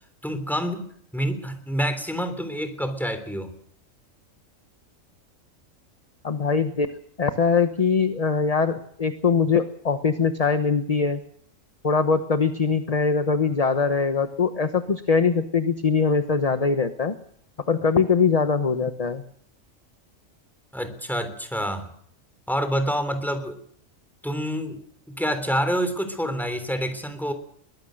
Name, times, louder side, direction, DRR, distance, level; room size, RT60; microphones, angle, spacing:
voice 1, 0.2-0.8 1.1-3.5 20.7-21.9 22.5-23.6 24.2-24.8 25.1-27.3, equal, ahead, 8 dB, 3.4 m, -27 dB
voice 2, 6.2-6.9 7.2-11.2 11.8-17.1 17.7-19.2, left 5 dB, 30° left, 9 dB, 1.1 m, -22 dB
22.5 x 19.0 x 6.4 m, 0.63 s
omnidirectional pair, 1.4 m